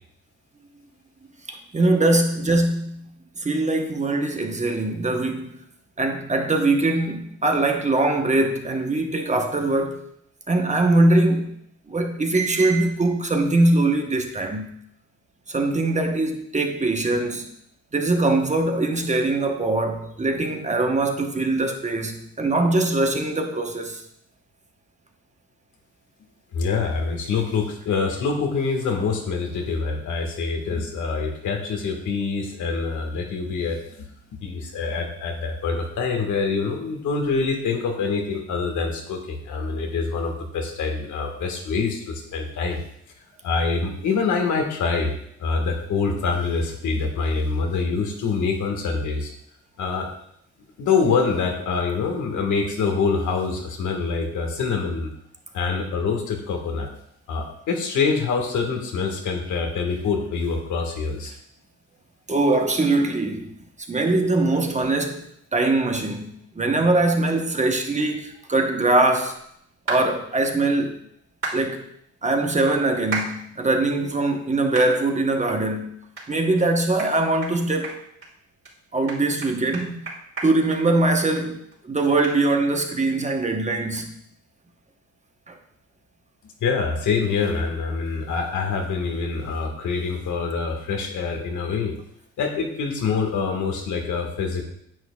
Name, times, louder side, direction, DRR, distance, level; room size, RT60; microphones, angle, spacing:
voice 1, 1.5-5.5 6.0-10.0 10.5-11.6 11.9-14.7 15.5-17.5 17.9-24.0 62.3-63.5 63.9-65.2 65.5-69.4 69.9-71.0 71.5-71.9 72.2-75.9 76.3-78.0 78.9-80.0 80.4-84.1 85.5-85.6, right 2 dB, 25° right, 1.1 m, -22 dB
voice 2, 26.5-34.1 34.4-42.8 43.4-45.1 45.4-49.3 49.8-50.1 50.8-55.1 55.5-56.9 57.3-61.3 86.6-92.0 92.4-94.6, left 4 dB, 75° left, 1.7 m, -25 dB
sound 1, 69.9-70.1 71.4-71.6 73.1-73.3 73.8-73.9 74.7-74.9 75.4-75.5 76.2-76.3 76.6-76.7 77.0-77.1 77.4-77.6 77.8-78.3 78.6-78.7 79.1-81.5 81.7-81.8 82.2-82.4, right 3 dB, 45° right, 3.4 m, -31 dB
9.8 x 7.8 x 2.4 m
cardioid pair, 90°, 30 cm